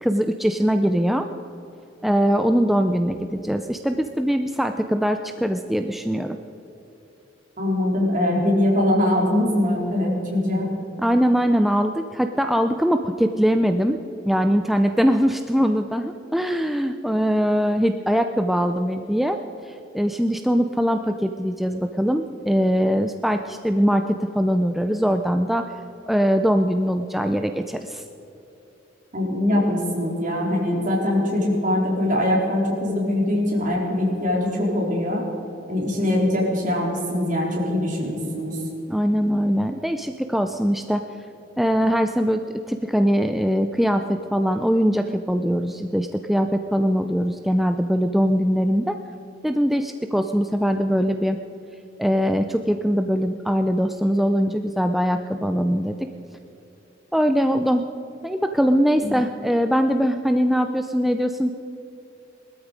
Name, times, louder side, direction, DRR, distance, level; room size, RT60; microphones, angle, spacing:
voice 1, 0.0-1.3 2.0-6.4 11.0-14.0 14.2-19.4 19.6-25.6 26.1-28.0 38.9-41.0 41.6-48.9 49.4-51.4 52.0-55.9 57.1-57.9 58.2-61.5, equal, ahead, 6 dB, 0.4 m, -22 dB
voice 2, 7.6-10.7 29.1-35.2 35.7-38.6 59.0-59.1, left 1 dB, 45° right, -2 dB, 3.9 m, -22 dB
20.0 x 13.0 x 5.1 m, 3.0 s
head